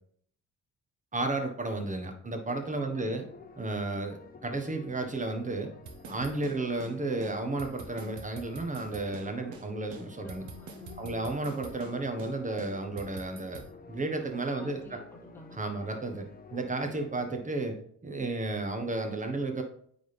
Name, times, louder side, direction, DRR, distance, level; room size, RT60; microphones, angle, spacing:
voice 1, 1.1-3.2 3.6-5.7 6.1-10.4 11.0-13.6 13.9-15.0 15.6-17.8 18.0-19.6, right 2 dB, 25° right, 5 dB, 1.3 m, -33 dB
Me So Horny, 2.5-17.5, left 4 dB, 30° left, 0.9 m, -51 dB
voice 2, 2.8-3.2 10.2-11.3 14.6-15.6, left 1 dB, 10° left, -1 dB, 2.0 m, -50 dB
sound 1, 5.9-6.9 7.2-7.3 7.6-9.3 9.5-9.6 9.9-11.9 12.2-12.3 12.6-13.7, right 4 dB, 75° right, 1.3 m, -45 dB
9.3 x 3.9 x 3.4 m, 0.63 s
cardioid pair, 90°, 30 cm